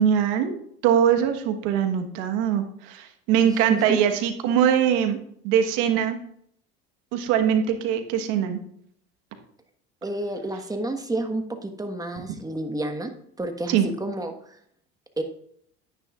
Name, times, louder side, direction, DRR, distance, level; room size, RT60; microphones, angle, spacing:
voice 1, 0.0-5.2 5.4-6.2 7.1-8.6 13.7-13.9, right 9 dB, 75° right, 6 dB, 1.3 m, -22 dB
voice 2, 3.4-4.0 10.0-13.1 13.4-14.6 15.2-15.3, right 2 dB, 10° right, 5 dB, 1.3 m, -30 dB
10.0 x 9.7 x 2.4 m, 0.68 s
supercardioid pair, 85°, 31 cm